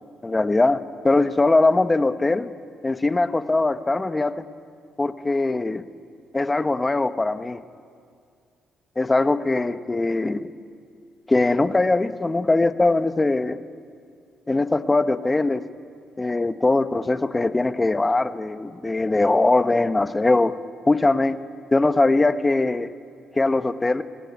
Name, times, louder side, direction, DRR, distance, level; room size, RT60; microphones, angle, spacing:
voice 1, 0.2-2.5 2.8-4.4 5.0-5.8 6.3-7.6 9.0-10.5 11.3-13.6 14.5-15.7 16.2-20.6 20.8-21.3 21.7-22.9 23.3-24.0, left 2 dB, 20° left, 10 dB, 1.2 m, -21 dB
27.0 x 18.0 x 9.6 m, 2.2 s
cardioid pair, 90°, 0 cm